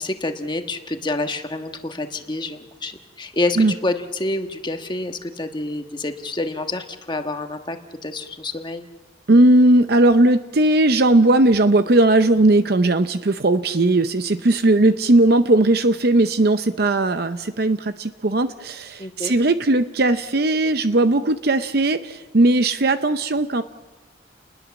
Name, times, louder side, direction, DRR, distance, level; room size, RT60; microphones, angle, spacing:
voice 1, 0.0-8.8 19.0-19.3, left 2 dB, 25° left, 6 dB, 1.4 m, -28 dB
voice 2, 9.3-23.6, right 2 dB, 55° right, 10 dB, 0.7 m, -17 dB
29.5 x 21.0 x 7.1 m, 1.2 s
head